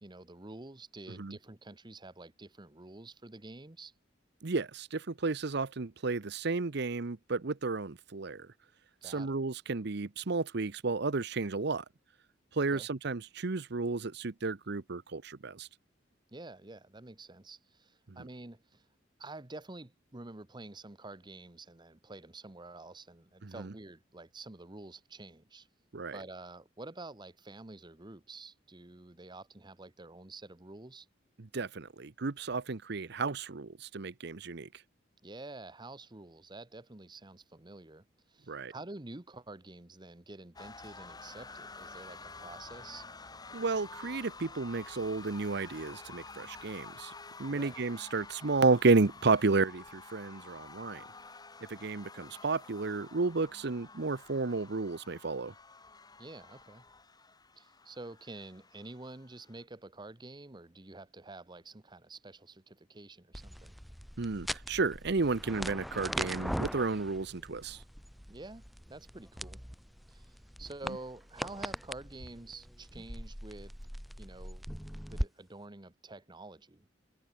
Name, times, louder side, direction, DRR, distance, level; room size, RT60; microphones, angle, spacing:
voice 1, 0.0-3.9 9.0-9.4 12.6-12.9 16.3-18.9 19.2-25.7 26.1-31.1 35.2-43.1 47.5-47.8 56.2-56.9 57.6-63.8 68.3-69.6 70.1-73.7 74.2-74.6 75.1-76.9, right 2 dB, 25° right, 1.1 m, -48 dB
voice 2, 4.4-8.5 9.0-11.8 12.5-15.7 18.1-18.2 23.4-23.7 25.9-26.2 31.4-34.8 38.5-38.7 43.5-47.1 47.4-51.0 51.7-55.5 64.2-67.8, right 3 dB, 60° right, 0.8 m, -32 dB
sound 1, 40.6-59.6, left 4 dB, 20° left, 2.6 m, -50 dB
sound 2, 63.3-75.3, equal, ahead, 1.0 m, -41 dB
head